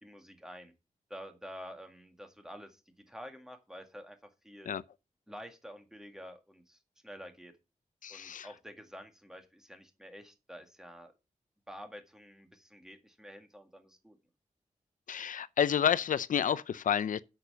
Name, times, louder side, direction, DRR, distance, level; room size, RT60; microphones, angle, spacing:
voice 1, 0.0-0.7 1.1-4.2 4.4-4.7 5.3-7.5 8.1-11.1 11.7-14.2, equal, 5° right, 1.8 m, -49 dB
voice 2, 8.0-8.5 15.1-17.2, left 8 dB, 85° left, 0.5 m, -30 dB
8.4 x 6.7 x 6.8 m
wide cardioid pair, 150°, 13 cm